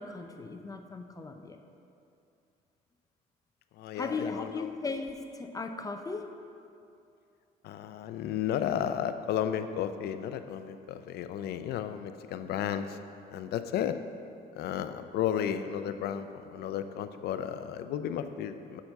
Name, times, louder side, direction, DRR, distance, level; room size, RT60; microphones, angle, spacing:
voice 1, 0.0-1.6 3.9-6.2, left 4 dB, 20° left, 6 dB, 0.6 m, -37 dB
voice 2, 3.8-4.7 7.6-13.0 13.3-14.0 14.6-18.8, left 9 dB, 70° left, 10 dB, 0.5 m, -33 dB
7.0 x 6.0 x 6.5 m, 2.6 s
cardioid pair, 110°, 17 cm